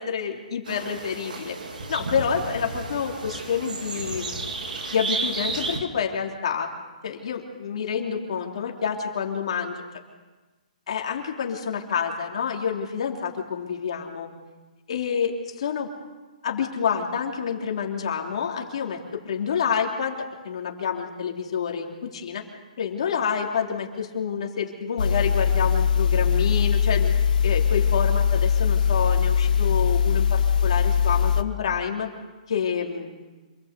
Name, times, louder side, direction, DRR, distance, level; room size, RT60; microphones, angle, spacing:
voice 1, 0.0-1.6 1.9-4.4 4.9-6.7 7.0-9.8 10.9-14.3 14.9-15.9 16.4-22.4 22.8-27.1 27.4-32.1 32.5-33.2, left 7 dB, 45° left, 1 dB, 3.3 m, -28 dB
sound 1, 0.7-5.8, right 3 dB, 80° right, 4.0 m, -32 dB
sound 2, 25.0-31.4, left 7 dB, 75° left, 1.5 m, -21 dB
27.0 x 20.0 x 8.3 m, 1.2 s
hypercardioid pair, 180°, 4 cm